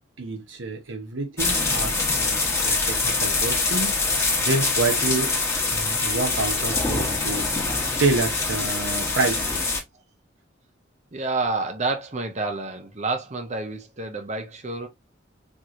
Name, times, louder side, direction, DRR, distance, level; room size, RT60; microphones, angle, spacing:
voice 1, 0.2-4.0 4.4-5.3 5.7-7.5 8.0-9.6, right 3 dB, 90° right, 1.0 m, -28 dB
sound 1, 1.4-9.8, left 3 dB, 15° left, 1.1 m, -24 dB
voice 2, 11.1-14.9, right 3 dB, 35° right, 0.8 m, -29 dB
4.5 x 3.1 x 2.6 m
head